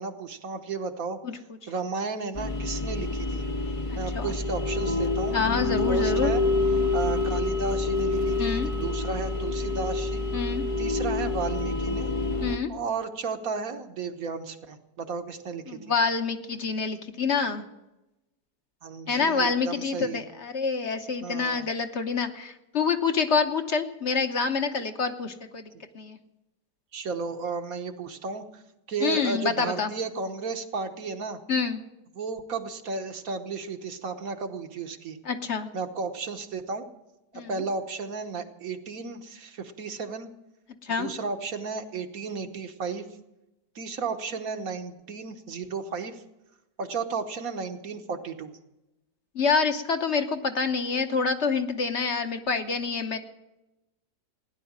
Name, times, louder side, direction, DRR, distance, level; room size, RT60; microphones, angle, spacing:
voice 1, 0.0-1.2 1.7-3.4 3.9-5.4 5.9-6.4 6.9-10.2 10.8-12.1 12.7-15.8 18.8-20.2 21.2-21.7 26.9-28.6 28.9-31.4 32.1-35.2 35.7-36.9 37.3-40.3 41.0-43.1 43.7-46.2 46.8-48.5, right 4 dB, 65° right, 6 dB, 1.5 m, -33 dB
sound 1, 2.3-12.6, left 2 dB, 30° left, 0.6 m, -27 dB
voice 2, 3.9-4.3 5.3-6.3 8.4-8.7 10.3-10.6 12.4-12.7 15.7-17.6 19.1-25.7 25.9-26.2 29.0-29.9 31.5-31.8 35.2-35.7 37.3-37.5 40.8-41.1 49.3-53.2, left 5 dB, 50° left, 7 dB, 1.2 m, -27 dB
16.5 x 10.5 x 7.3 m, 0.95 s
omnidirectional pair, 1.7 m